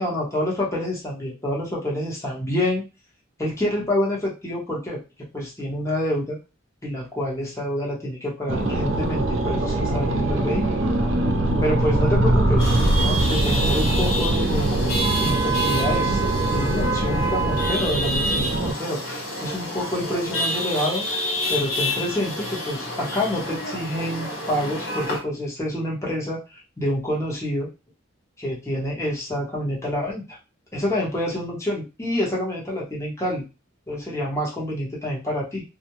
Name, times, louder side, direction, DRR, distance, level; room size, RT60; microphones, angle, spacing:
voice 1, 0.0-2.8 3.4-5.0 5.3-6.4 6.8-10.6 11.6-14.7 15.2-21.1 21.5-27.7 28.4-30.4 30.7-33.4 33.9-35.6, left 1 dB, 15° left, -4 dB, 0.8 m, -27 dB
sound 1, 8.5-18.7, right 2 dB, 75° right, 0.5 m, -22 dB
Chatter / Vehicle horn car horn honking / Traffic noise roadway noise, 12.6-25.2, right 1 dB, 90° left, 1.3 m, -28 dB
2.4 x 2.1 x 2.9 m, 0.28 s
head